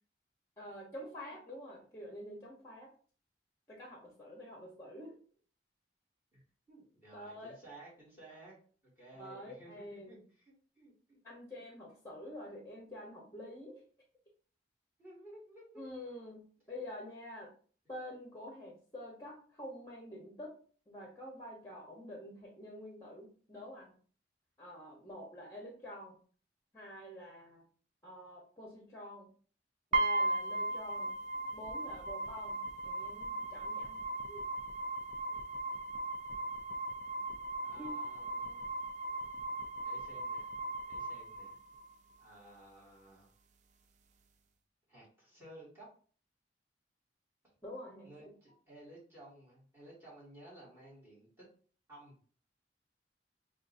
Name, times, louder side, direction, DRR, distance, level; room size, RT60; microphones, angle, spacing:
voice 1, 0.6-2.9 3.7-5.2 7.1-7.5 9.2-10.2 11.2-13.8 15.8-16.4 16.7-17.5 17.9-20.5 20.9-23.9 24.6-26.2 26.7-27.6 28.0-29.3 29.9-31.1 31.5-34.4 37.8-38.0 47.6-48.3, equal, 15° left, -2 dB, 0.9 m, -47 dB
voice 2, 6.7-8.6 9.0-11.2 11.5-11.6 15.0-15.8 37.6-38.7 39.8-40.5 40.9-41.6 42.2-43.3 44.9-45.9 48.0-51.5 51.9-52.2, right 1 dB, 15° right, -6 dB, 2.0 m, -55 dB
sound 1, 29.9-41.9, right 2 dB, 45° right, 0.4 m, -37 dB
6.2 x 2.4 x 2.6 m, 0.43 s
head